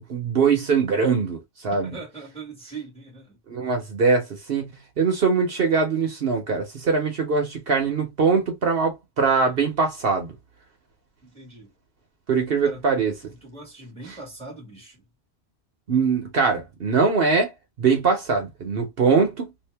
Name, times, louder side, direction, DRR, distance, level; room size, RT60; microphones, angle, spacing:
voice 1, 0.0-2.0 3.5-4.7 5.0-10.3 12.3-13.1 15.9-17.5 17.8-19.5, right 5 dB, 60° right, 1.0 m, -22 dB
voice 2, 1.7-3.4 11.2-11.7 12.6-12.9 13.2-15.1, right 3 dB, 5° left, 1.4 m, -41 dB
2.8 x 2.6 x 3.3 m
omnidirectional pair, 1.1 m